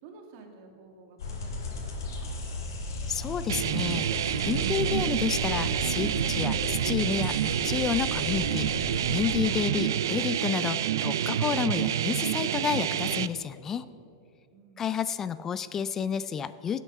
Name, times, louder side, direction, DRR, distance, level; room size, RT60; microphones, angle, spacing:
voice 1, 0.0-2.3 14.5-15.0, right 4 dB, 45° right, 3 dB, 2.2 m, -52 dB
sound 1, 1.2-9.3, left 2 dB, 85° left, 2.8 m, -35 dB
voice 2, 3.1-13.9 14.8-16.8, left 7 dB, 20° left, 15 dB, 0.3 m, -31 dB
sound 2, 3.5-13.3, right 10 dB, 80° right, 0.4 m, -28 dB
16.5 x 8.1 x 5.6 m, 2.8 s
supercardioid pair, 150°, 2 cm